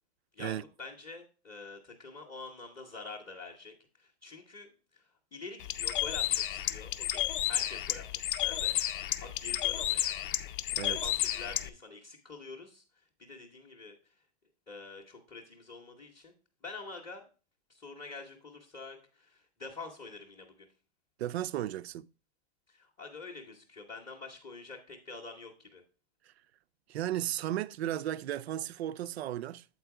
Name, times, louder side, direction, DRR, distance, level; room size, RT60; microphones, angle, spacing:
voice 1, 0.3-8.8 9.2-10.2 10.9-12.8 13.2-14.0 14.7-16.3 16.6-17.3 17.7-20.7 22.7-25.8, left 3 dB, 10° left, 0.6 m, -46 dB
Bird, 5.6-11.7, left 13 dB, 55° left, 0.5 m, -32 dB
voice 2, 21.2-22.1 26.3-26.4 26.9-29.7, right 12 dB, 80° right, 0.5 m, -35 dB
8.0 x 4.4 x 4.6 m
supercardioid pair, 165°, 31 cm